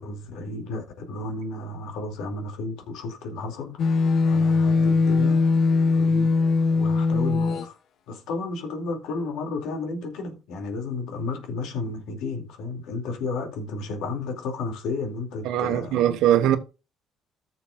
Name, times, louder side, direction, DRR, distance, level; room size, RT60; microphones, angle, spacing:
voice 1, 0.0-4.0 4.3-5.5 5.9-6.4 6.7-7.8 8.1-16.0, left 3 dB, 85° left, 2.6 m, -32 dB
sound 1, 3.8-7.7, left 4 dB, 65° left, 1.0 m, -20 dB
voice 2, 15.4-16.6, right 11 dB, 85° right, 1.2 m, -21 dB
14.5 x 6.9 x 2.5 m
cardioid pair, 100°, 0 cm